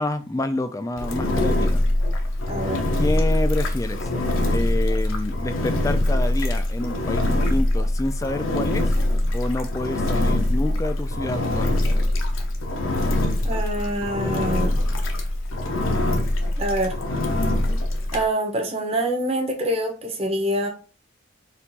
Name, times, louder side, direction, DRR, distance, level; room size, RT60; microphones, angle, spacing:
voice 1, 0.0-1.8 3.0-4.1 4.5-8.9 9.3-11.7, left 1 dB, 15° left, 0.3 m, -28 dB
Engine, 1.0-18.3, left 1 dB, 75° left, 0.8 m, -23 dB
voice 2, 2.5-2.8 13.4-14.7 16.6-17.0 18.1-20.7, right 1 dB, 30° right, 1.0 m, -25 dB
4.4 x 2.5 x 4.0 m
head